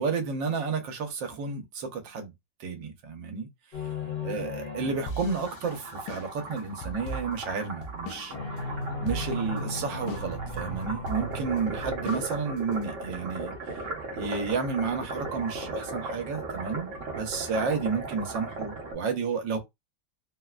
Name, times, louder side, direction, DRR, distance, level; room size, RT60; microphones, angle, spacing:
voice 1, 0.0-2.3 2.6-3.5 4.2-8.3 9.0-13.5 14.1-19.6, right 5 dB, 85° right, 1.5 m, -31 dB
sound 1, 3.7-6.0 8.3-13.3, left 2 dB, 45° left, 1.0 m, -37 dB
sound 2, 5.1-8.3 8.6-8.7 9.1-9.6 10.1-10.6 11.1-12.8, right 1 dB, 75° left, 1.2 m, -39 dB
sound 3, 5.3-18.9, right 2 dB, 50° right, 1.2 m, -37 dB
3.7 x 2.1 x 2.3 m
omnidirectional pair, 1.9 m